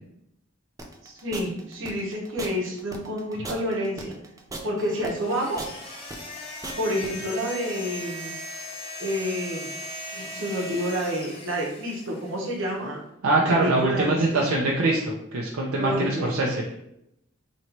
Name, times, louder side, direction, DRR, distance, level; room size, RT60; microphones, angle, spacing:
sound 1, 0.8-7.1, right 2 dB, 15° right, 0.3 m, -39 dB
voice 1, 1.0-4.1 4.6-5.7 6.8-8.3 9.0-9.7 10.1-13.0 13.3-14.5 15.8-16.6, equal, 60° right, -3 dB, 0.9 m, -29 dB
sound 2, 5.1-12.5, left 1 dB, 25° left, 0.7 m, -38 dB
voice 2, 13.2-16.6, right 2 dB, 80° right, -2 dB, 0.6 m, -23 dB
3.0 x 2.7 x 4.3 m, 0.79 s
head